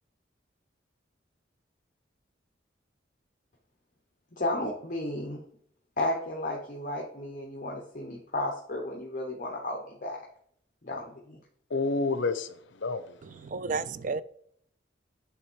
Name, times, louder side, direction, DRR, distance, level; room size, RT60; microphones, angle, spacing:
voice 1, 4.3-5.4 6.0-10.2 10.8-11.4, left 1 dB, 45° left, 1.0 m, -33 dB
voice 2, 11.7-13.4, left 3 dB, 75° left, 0.7 m, -30 dB
voice 3, 13.4-14.2, right 4 dB, 45° right, 0.3 m, -31 dB
8.6 x 3.4 x 4.5 m
head